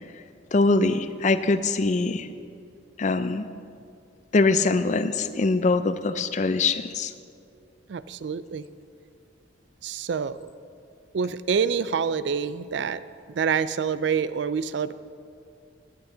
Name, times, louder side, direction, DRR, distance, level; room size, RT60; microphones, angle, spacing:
voice 1, 0.5-2.3 3.0-3.5 4.3-7.1, left 3 dB, 40° left, 12 dB, 0.4 m, -23 dB
voice 2, 7.9-8.6 9.8-10.5 11.1-13.0 13.3-14.9, right 6 dB, 65° right, 15 dB, 0.4 m, -27 dB
16.5 x 10.5 x 3.9 m, 2.4 s
head